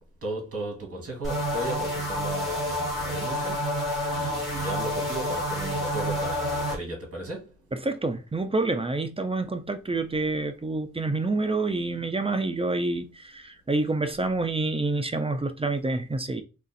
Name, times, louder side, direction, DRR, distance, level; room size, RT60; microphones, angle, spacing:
voice 1, 0.2-7.6, right 1 dB, 50° right, 1.7 m, -36 dB
sound 1, 1.2-6.8, equal, ahead, 2.1 m, -29 dB
voice 2, 7.8-16.4, right 3 dB, 20° right, 0.5 m, -28 dB
3.6 x 2.5 x 4.0 m
wide cardioid pair, 115°, 31 cm